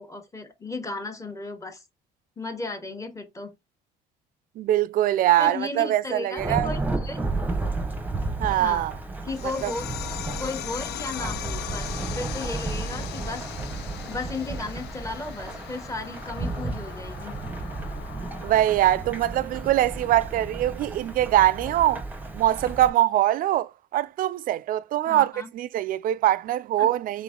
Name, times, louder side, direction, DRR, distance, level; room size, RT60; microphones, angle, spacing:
voice 1, 0.0-1.8 2.4-3.5 5.4-7.2 8.6-8.9 9.2-9.9 10.4-13.5 14.1-17.3 25.1-25.5 26.8-26.9, left 2 dB, 20° left, 1.1 m, -35 dB
voice 2, 4.6-6.7 8.4-8.9 9.6-9.7 18.4-22.0 22.3-27.2, right 13 dB, 55° right, 0.4 m, -23 dB
Thunderstorm / Rain, 6.4-22.9, right 3 dB, 10° right, 0.8 m, -33 dB
sound 1, 9.3-20.3, left 13 dB, 75° left, 0.4 m, -40 dB
3.9 x 3.6 x 3.6 m
cardioid pair, 110°, 17 cm